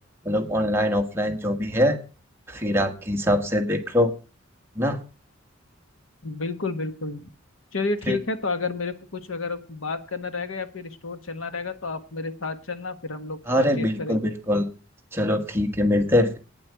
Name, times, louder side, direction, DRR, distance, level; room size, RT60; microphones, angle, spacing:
voice 1, 0.2-2.0 2.5-4.1 4.7-5.0 8.1-8.2 13.5-14.7 15.1-16.4, left 1 dB, 10° right, 3 dB, 1.5 m, -23 dB
voice 2, 6.2-7.3 7.7-14.3, left 3 dB, 90° left, 10 dB, 1.4 m, -31 dB
9.6 x 7.5 x 8.2 m, 0.35 s
head